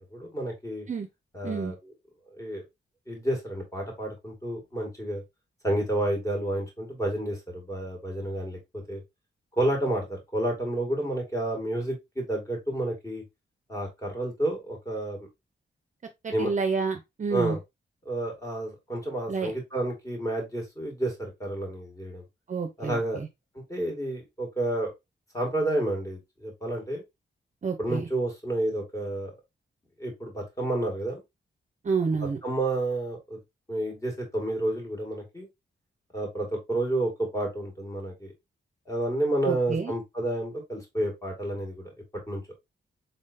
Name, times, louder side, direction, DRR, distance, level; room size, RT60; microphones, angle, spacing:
voice 1, 0.1-0.9 1.3-1.9 2.4-2.6 3.1-5.2 5.6-9.0 9.5-13.2 13.7-15.2 16.3-16.5 17.3-17.6 18.1-22.2 22.8-23.2 23.7-24.9 25.3-27.0 27.8-29.3 30.0-31.2 32.4-33.4 33.7-35.5 36.1-38.3 38.9-41.9 42.3-42.4, right 1 dB, 15° left, 2.1 m, -30 dB
voice 2, 16.2-17.6 19.3-19.5 22.5-23.3 27.6-28.1 31.8-32.4 39.5-39.9, right 5 dB, 40° right, 0.6 m, -29 dB
4.1 x 3.6 x 2.6 m
wide cardioid pair, 105°, 20 cm